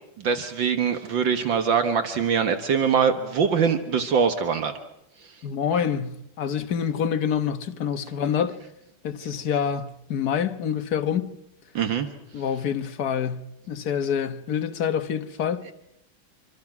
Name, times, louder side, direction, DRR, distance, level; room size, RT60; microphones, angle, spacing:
voice 1, 0.2-4.7 11.8-12.1, right 6 dB, 70° right, 2.0 m, -23 dB
voice 2, 5.4-8.6 9.0-11.3 12.3-15.7, left 8 dB, 55° left, 1.5 m, -27 dB
26.5 x 24.5 x 6.0 m
omnidirectional pair, 2.2 m